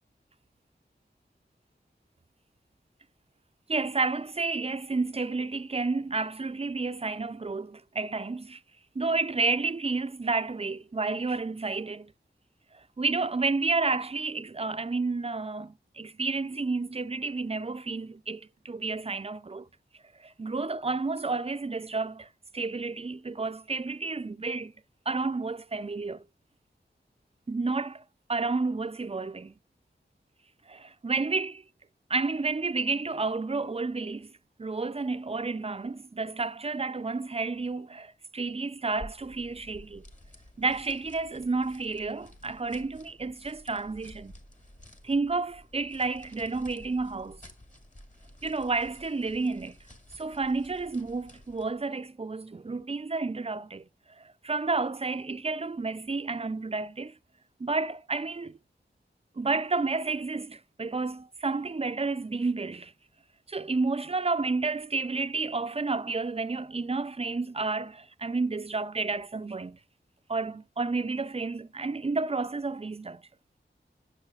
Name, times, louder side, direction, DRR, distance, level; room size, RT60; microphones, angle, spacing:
voice 1, 3.7-8.6 9.0-12.1 12.7-19.7 20.2-22.3 22.5-24.7 25.1-26.2 27.5-28.0 28.3-29.5 30.7-31.6 32.1-34.3 34.6-40.0 40.6-44.3 45.0-47.4 48.4-49.8 50.2-53.8 54.2-57.1 57.6-58.6 59.4-62.9 63.5-69.8 70.3-73.2, right 3 dB, 30° right, 0.4 m, -31 dB
sound 1, 38.9-51.8, left 1 dB, 40° left, 2.0 m, -52 dB
10.0 x 6.3 x 2.4 m
wide cardioid pair, 75°, 20 cm